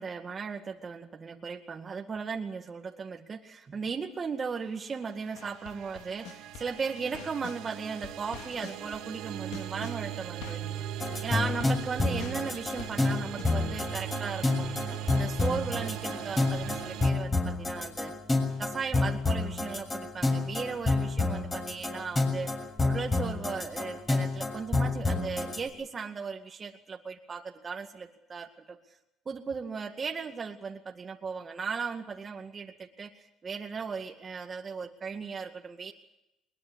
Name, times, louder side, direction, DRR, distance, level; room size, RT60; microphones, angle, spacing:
voice 1, 0.0-10.9 11.2-18.1 18.6-22.5 22.8-28.8 29.3-35.9, right 5 dB, 35° right, 3 dB, 2.1 m, -37 dB
sound 1, 4.8-17.1, right 11 dB, 75° right, 1.2 m, -39 dB
sound 2, 5.4-7.6 8.0-13.4, left 8 dB, 80° left, 2.4 m, -45 dB
sound 3, 11.0-25.6, left 3 dB, 25° left, 7.0 m, -29 dB
21.5 x 21.5 x 8.2 m, 0.87 s
supercardioid pair, 85°, 0 cm